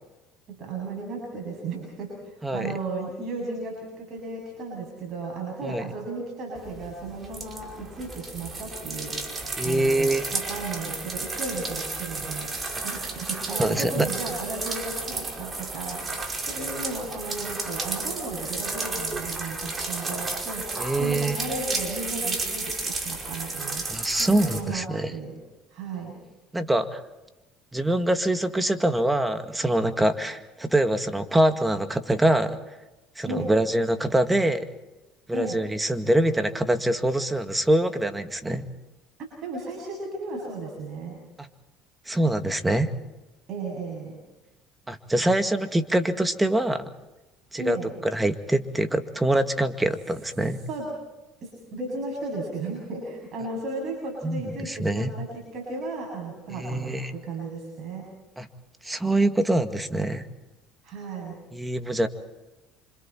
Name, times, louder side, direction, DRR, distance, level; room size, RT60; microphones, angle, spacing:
voice 1, 0.5-25.4 25.7-26.2 33.2-33.5 35.3-35.6 39.4-41.2 43.5-44.2 47.6-47.9 50.7-50.9 51.4-55.3 55.5-58.1 60.8-61.4, right 3 dB, 55° right, -1 dB, 7.5 m, -35 dB
voice 2, 2.4-2.8 5.6-5.8 9.6-10.2 13.5-14.1 20.8-21.4 23.9-25.1 26.5-27.0 27.7-32.6 33.2-34.7 35.3-38.7 41.4-41.5 42.1-42.9 44.9-46.8 47.5-47.8 48.0-50.6 54.2-55.1 56.5-57.1 58.4-58.5 58.8-60.3 61.5-62.1, right 1 dB, 10° right, 8 dB, 2.0 m, -24 dB
sound 1, 6.6-24.6, right 3 dB, 30° right, 5.2 m, -33 dB
29.0 x 26.0 x 4.5 m, 1.0 s
supercardioid pair, 80°, 0 cm